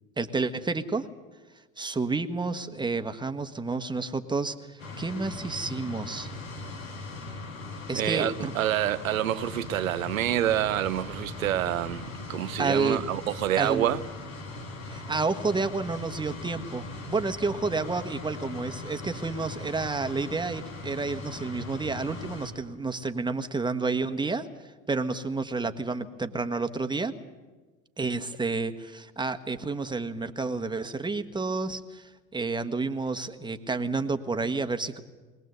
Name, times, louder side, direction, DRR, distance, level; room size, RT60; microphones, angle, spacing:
voice 1, 0.2-1.1 1.8-6.3 7.9-8.5 12.6-13.0 13.6-13.9 14.9-24.5 24.9-27.1 28.0-35.0, right 3 dB, 10° right, 1.4 m, -30 dB
sound 1, 4.8-22.5, left 2 dB, 90° left, 3.4 m, -39 dB
voice 2, 7.9-14.0, right 12 dB, 85° right, 0.9 m, -27 dB
21.5 x 19.0 x 8.1 m
hypercardioid pair, 80°, 40 cm